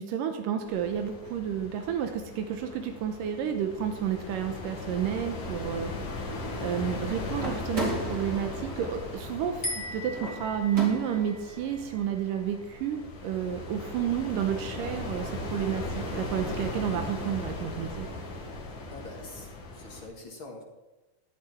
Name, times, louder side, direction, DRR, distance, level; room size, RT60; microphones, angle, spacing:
voice 1, 0.0-5.9 6.6-18.1, right 9 dB, 85° right, 6 dB, 2.6 m, -31 dB
sound 1, 0.7-20.1, left 2 dB, 75° left, 4.0 m, -38 dB
sound 2, 7.3-11.4, right 1 dB, 30° right, 3.5 m, -37 dB
sound 3, 9.6-13.0, left 1 dB, 20° left, 1.8 m, -39 dB
voice 2, 18.9-20.6, left 2 dB, 40° left, 1 dB, 2.3 m, -45 dB
16.0 x 11.5 x 4.4 m, 1.0 s
omnidirectional pair, 3.8 m